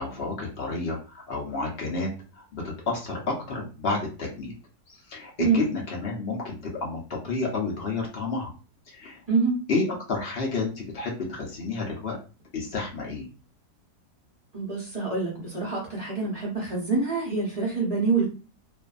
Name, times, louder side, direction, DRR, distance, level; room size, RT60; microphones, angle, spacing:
voice 1, 0.0-4.5 4.9-8.5 8.9-9.2 9.7-12.2 12.5-13.3, left 3 dB, 60° left, -1 dB, 0.6 m, -30 dB
voice 2, 9.3-9.6 14.5-18.3, right 4 dB, 35° right, -4 dB, 0.6 m, -26 dB
2.6 x 2.4 x 2.3 m, 0.34 s
omnidirectional pair, 1.7 m